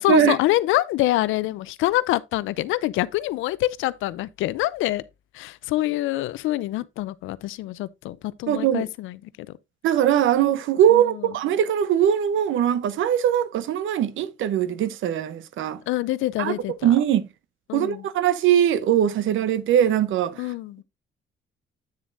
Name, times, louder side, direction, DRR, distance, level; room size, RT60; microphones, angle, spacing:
voice 1, 0.0-5.0 5.3-9.5 10.9-11.0 15.9-17.0 17.7-18.0 20.4-20.8, left 16 dB, 90° left, 0.5 m, -25 dB
voice 2, 8.5-8.9 9.8-15.8 16.4-16.5 16.8-17.3 17.7-20.5, right 10 dB, 80° right, 0.9 m, -21 dB
8.9 x 7.0 x 2.6 m
cardioid pair, 90°, 20 cm